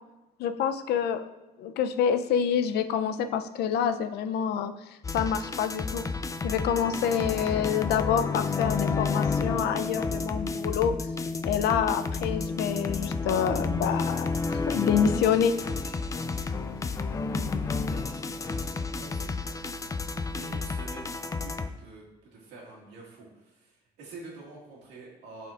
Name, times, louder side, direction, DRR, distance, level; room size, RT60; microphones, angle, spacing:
voice 1, 0.4-1.3 1.6-6.0 6.4-10.9 11.4-15.5, left 8 dB, 75° left, 9 dB, 0.5 m, -27 dB
sound 1, 5.0-21.7, left 4 dB, 20° left, 0.3 m, -31 dB
sound 2, 13.8-21.2, right 3 dB, 60° left, 1.8 m, -51 dB
voice 2, 17.0-18.1 18.9-19.6 20.3-22.0 22.3-25.5, right 3 dB, 90° right, -3 dB, 1.9 m, -47 dB
10.5 x 4.3 x 2.5 m, 1.0 s
cardioid pair, 110°, 17 cm